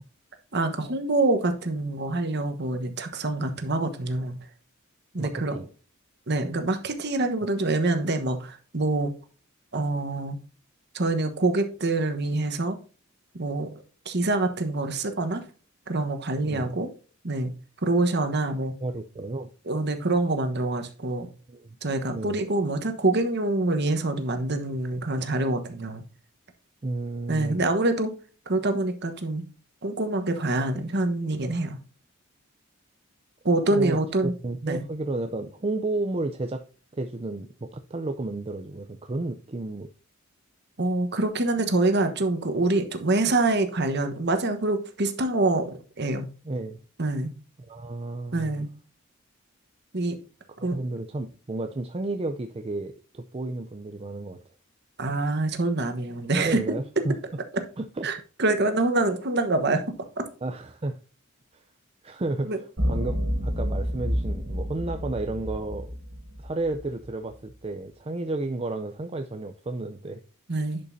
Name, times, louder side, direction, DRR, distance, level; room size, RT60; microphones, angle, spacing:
voice 1, 0.5-4.3 5.1-5.6 6.3-9.1 9.7-10.4 10.9-12.8 13.3-13.7 14.0-15.4 15.9-16.9 17.2-17.5 17.8-18.7 19.7-21.3 21.8-26.0 27.3-28.1 28.5-29.4 29.8-31.8 33.4-34.3 34.6-34.8 40.8-46.3 47.0-47.3 48.3-48.7 49.9-50.2 50.6-50.8 55.0-56.6 58.0-59.8 60.2-60.3 62.4-62.6 70.5-70.8, right 2 dB, 50° right, 1.2 m, -25 dB
voice 2, 5.2-5.7 7.4-7.5 16.4-16.8 18.8-19.5 21.5-21.8 22.1-22.4 26.8-27.6 33.7-36.6 36.9-39.9 46.4-46.8 47.7-48.7 50.6-54.4 56.3-57.2 57.8-58.1 60.4-61.0 61.5-61.6 62.0-62.6 62.9-65.9 66.4-70.2, right 2 dB, 30° right, 0.5 m, -32 dB
sound 1, 62.8-67.1, equal, 80° right, 3.1 m, -29 dB
11.0 x 5.3 x 2.7 m
head